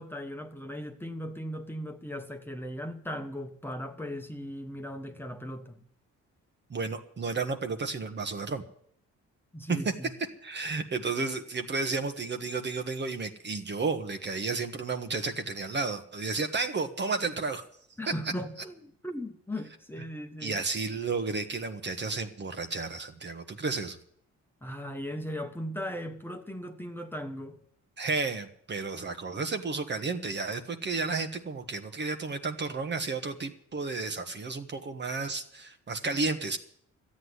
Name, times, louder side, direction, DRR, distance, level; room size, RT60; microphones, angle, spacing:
voice 1, 0.0-5.8 9.5-10.1 18.0-20.6 24.6-27.6, equal, 5° left, 1.3 m, -38 dB
voice 2, 6.7-8.6 9.7-9.8 10.4-17.6 20.4-24.0 28.0-36.6, right 4 dB, 35° right, 1.4 m, -32 dB
13.0 x 8.5 x 9.6 m
cardioid pair, 90°, 30 cm